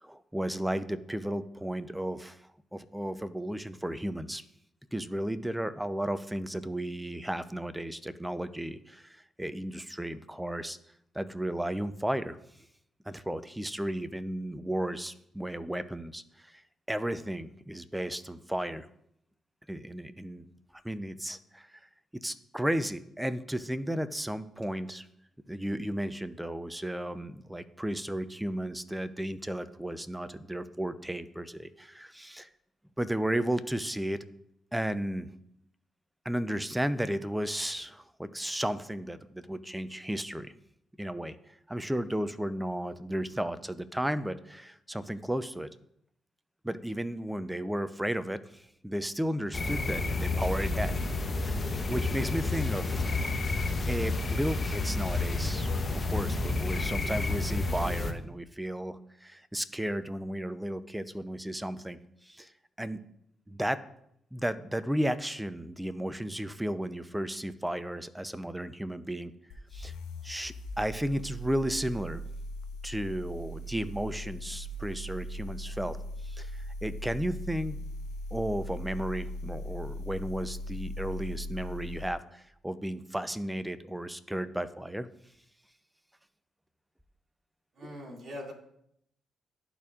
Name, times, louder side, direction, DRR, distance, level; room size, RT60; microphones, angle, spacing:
voice 1, 0.0-2.4 2.7-4.4 4.9-10.8 11.1-12.4 13.1-16.6 16.9-18.9 19.7-20.4 20.8-21.8 22.2-25.1 25.5-32.5 33.0-34.2 34.7-35.3 36.2-40.5 41.0-41.4 41.7-45.7 46.6-51.1 51.4-51.6 51.9-53.1 53.9-62.0 62.2-62.5 62.8-63.0 63.5-63.8 64.3-69.3 69.7-69.9 70.2-72.2 72.8-76.0 76.2-77.8 78.3-85.1, right 1 dB, 10° right, 13 dB, 0.6 m, -34 dB
sound 1, 49.5-58.1, left 3 dB, 40° left, 0.9 m, -30 dB
sound 2, 69.5-82.2, equal, 80° left, 0.7 m, -39 dB
voice 2, 87.8-88.5, equal, 55° right, -1 dB, 2.4 m, -41 dB
12.0 x 4.3 x 2.5 m, 0.73 s
hypercardioid pair, 45°, 0 cm